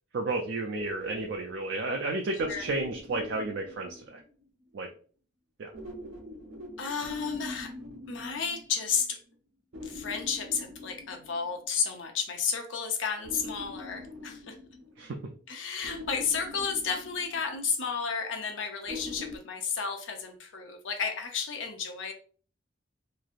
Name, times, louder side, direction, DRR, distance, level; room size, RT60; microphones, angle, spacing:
voice 1, 0.1-4.2 4.7-4.9 5.6-5.7 15.0-15.2, right 2 dB, 65° right, 2 dB, 0.4 m, -32 dB
sound 1, 0.8-4.4 5.7-9.0 9.7-11.8 13.2-15.3 15.8-17.9 18.9-19.4, left 1 dB, 85° right, 1.2 m, -44 dB
voice 2, 6.8-7.7 8.1-9.2 9.8-14.6 15.5-22.1, left 6 dB, 80° left, 4 dB, 0.6 m, -32 dB
3.1 x 2.6 x 2.4 m, 0.42 s
head